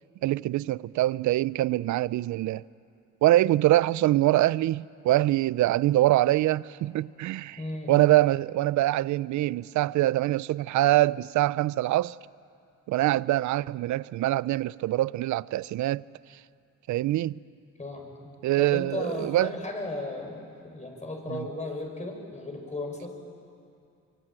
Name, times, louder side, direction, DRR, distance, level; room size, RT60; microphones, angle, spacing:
voice 1, 0.2-2.6 3.2-7.6 7.9-12.2 12.9-16.0 16.9-17.4 18.4-19.5 21.3-21.5, right 15 dB, 70° right, 0.5 m, -24 dB
voice 2, 7.6-7.9 17.8-23.1, left 2 dB, 25° left, 6.2 m, -35 dB
25.0 x 24.0 x 9.0 m
cardioid pair, 90°, 30 cm